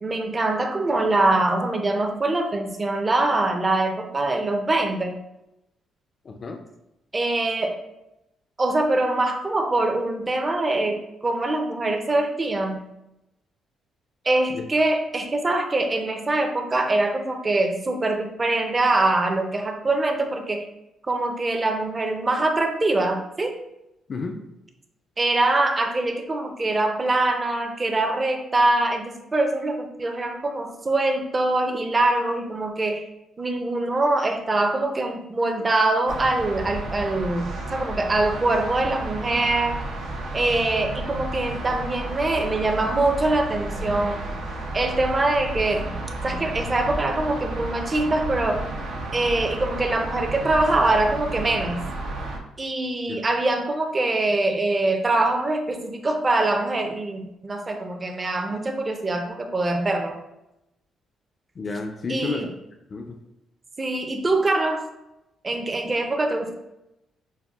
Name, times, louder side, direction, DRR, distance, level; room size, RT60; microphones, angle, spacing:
voice 1, 0.0-5.2 7.1-7.8 8.6-12.9 14.2-20.6 21.1-23.6 25.2-33.0 33.4-39.7 40.3-44.2 44.7-45.9 46.2-48.7 49.1-51.9 52.6-60.2 62.1-62.5 63.8-64.9 65.4-66.5, right 2 dB, 25° right, 5 dB, 0.5 m, -23 dB
voice 2, 6.3-6.6 14.5-14.6 24.1-24.4 53.1-53.2 61.6-62.4 62.9-63.2, left 3 dB, 40° left, 4 dB, 0.4 m, -31 dB
sound 1, 36.1-52.4, right 2 dB, 85° right, 0.6 m, -32 dB
5.3 x 2.1 x 2.3 m, 0.89 s
cardioid pair, 90°, 0 cm